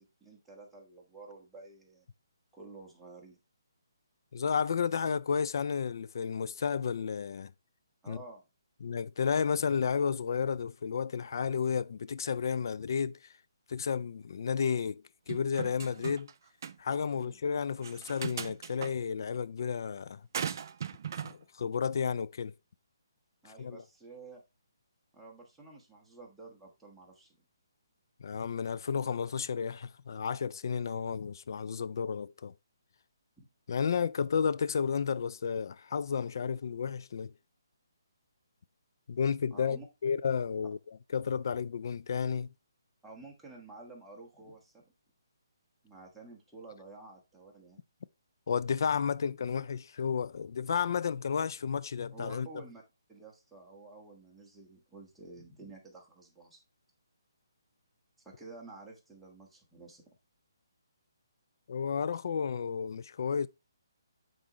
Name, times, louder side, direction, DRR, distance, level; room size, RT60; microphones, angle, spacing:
voice 1, 0.0-2.1 2.5-3.4 8.0-8.4 17.1-17.4 23.4-24.4 25.1-27.4 33.4-33.5 39.5-39.9 43.0-44.9 45.8-47.8 52.1-52.8 53.1-56.6 58.2-60.0, right 3 dB, 5° right, 1.5 m, -51 dB
voice 2, 4.3-7.5 8.1-8.2 8.8-13.2 13.7-16.3 16.8-20.2 21.2-22.5 23.4-23.8 28.2-32.5 33.7-37.3 39.1-40.8 41.1-42.5 48.5-52.5 61.7-63.5, left 6 dB, 60° left, 0.4 m, -32 dB
sound 1, 15.3-16.3 16.6-16.7 17.8-18.9 20.3-21.3, right 8 dB, 50° right, 0.4 m, -38 dB
8.6 x 3.9 x 3.1 m
hypercardioid pair, 150°, 2 cm